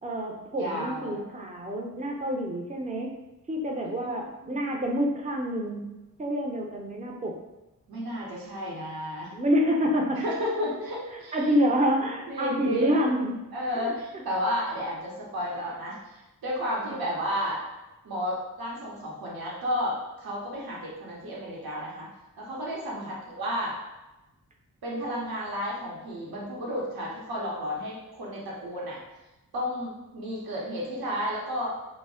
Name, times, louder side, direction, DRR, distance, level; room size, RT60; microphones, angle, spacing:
voice 1, 0.0-3.2 3.5-5.9 6.2-7.4 9.3-10.2 11.3-13.4 13.8-13.9 16.9-17.0 22.9-23.1, equal, 20° right, 1 dB, 0.5 m, -27 dB
voice 2, 0.6-1.2 3.8-4.6 7.9-9.3 10.1-11.4 12.3-13.0 13.5-17.6 18.0-22.1 22.4-23.8 24.8-29.0 29.5-31.8, equal, 70° right, -5 dB, 0.8 m, -32 dB
2.1 x 2.0 x 3.6 m, 1.0 s
cardioid pair, 45°, 37 cm